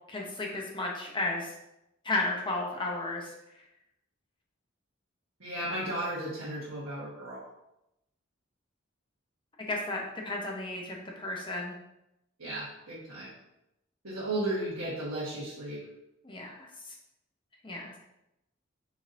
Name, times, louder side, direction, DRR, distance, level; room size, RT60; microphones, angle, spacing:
voice 1, 0.1-1.5 2.0-3.3 9.7-11.7 16.2-16.9 17.6-18.0, left 2 dB, 25° left, -1 dB, 0.8 m, -33 dB
voice 2, 5.4-7.4 12.4-13.3 14.0-15.8, right 1 dB, 90° right, -10 dB, 1.4 m, -34 dB
5.0 x 3.9 x 2.6 m, 0.86 s
head